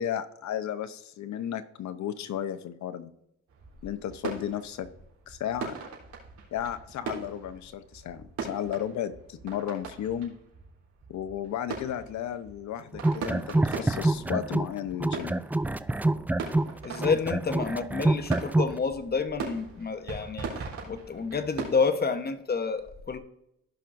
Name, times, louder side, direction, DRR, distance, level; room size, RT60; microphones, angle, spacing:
voice 1, 0.0-3.1 3.8-4.9 5.3-5.7 6.5-10.4 11.1-15.3, left 10 dB, 65° left, 11 dB, 0.9 m, -34 dB
sound 1, 3.5-21.9, right 5 dB, 70° right, 3.9 m, -41 dB
sound 2, 12.9-14.7 15.0-18.8, right 2 dB, 5° right, 0.3 m, -26 dB
voice 2, 16.8-20.5 20.9-23.2, left 5 dB, 30° left, 9 dB, 1.1 m, -29 dB
16.0 x 5.8 x 2.6 m, 0.78 s
cardioid pair, 90°, 30 cm